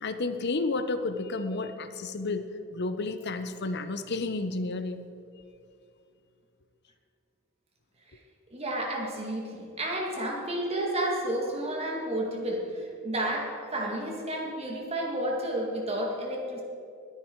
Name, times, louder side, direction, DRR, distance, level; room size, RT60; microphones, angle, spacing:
voice 1, 0.0-5.1, left 3 dB, 50° left, 0.8 m, -31 dB
voice 2, 8.5-16.6, right 1 dB, 25° right, 2.0 m, -31 dB
20.5 x 9.9 x 4.6 m
head